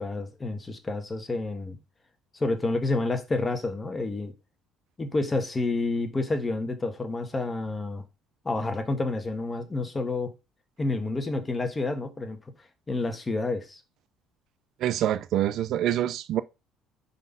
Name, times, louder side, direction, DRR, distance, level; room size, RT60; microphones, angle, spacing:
voice 1, 0.0-1.8 2.4-4.3 5.0-8.0 8.4-10.3 10.8-12.4 12.9-13.8, left 2 dB, 20° left, 1.5 m, -29 dB
voice 2, 14.8-16.4, right 12 dB, 65° right, 0.4 m, -26 dB
5.3 x 4.2 x 5.4 m
supercardioid pair, 90°, 0 cm